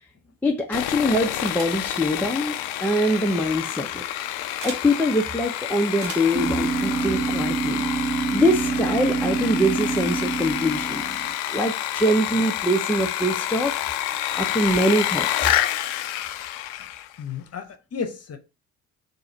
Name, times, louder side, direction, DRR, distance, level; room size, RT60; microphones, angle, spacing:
voice 1, 0.4-2.6 2.8-4.0 4.6-7.9 8.3-11.2 11.5-13.7 14.3-15.6, equal, 5° left, 0.5 m, -23 dB
Sawing, 0.7-17.1, left 13 dB, 60° left, 0.5 m, -28 dB
sound 1, 1.4-1.9 3.2-3.3 4.6-4.9 6.0-6.4, right 4 dB, 70° right, 1.0 m, -38 dB
sound 2, 6.3-11.3, right 4 dB, 25° right, 0.8 m, -26 dB
voice 2, 17.2-18.4, left 6 dB, 30° left, 0.9 m, -33 dB
3.8 x 2.7 x 4.4 m
figure-of-eight pair, 45°, 50 cm